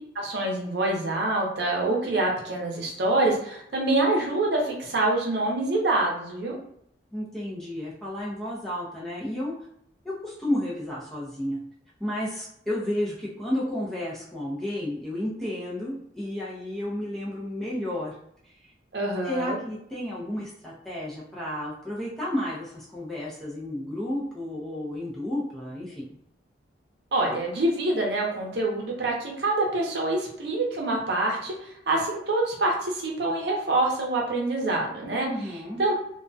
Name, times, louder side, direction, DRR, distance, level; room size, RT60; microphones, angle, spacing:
voice 1, 0.1-6.6 18.9-19.6 27.1-31.5 31.9-35.3 35.8-35.9, right 2 dB, 65° right, -1 dB, 0.7 m, -26 dB
voice 2, 7.1-9.5 10.0-11.6 12.0-18.2 18.4-18.7 19.2-26.1 35.3-35.8, left 1 dB, 5° left, -7 dB, 0.5 m, -32 dB
2.3 x 2.1 x 2.6 m, 0.71 s
head